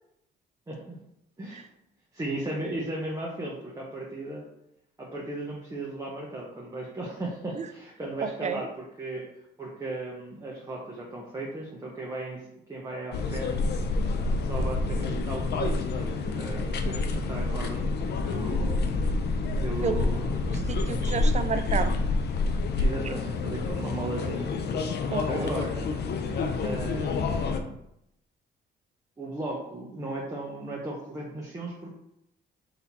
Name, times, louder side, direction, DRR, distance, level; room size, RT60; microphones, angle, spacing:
voice 1, 0.7-1.0 1.4-1.7 2.1-4.4 5.0-9.2 9.6-13.5 14.4-17.8 18.2-18.9 19.6-20.8 22.8-24.5 25.2-25.9 26.6-27.8 29.2-31.9, right 2 dB, 15° right, -3 dB, 0.8 m, -36 dB
voice 2, 8.2-8.6 19.8-20.0 20.7-22.0 25.1-25.5, right 6 dB, 35° right, 9 dB, 0.4 m, -31 dB
Quiet Berlin Street day with wind noise, 13.1-27.6, left 3 dB, 55° left, 0.5 m, -28 dB
4.1 x 2.8 x 4.1 m, 0.79 s
cardioid pair, 90°, 20 cm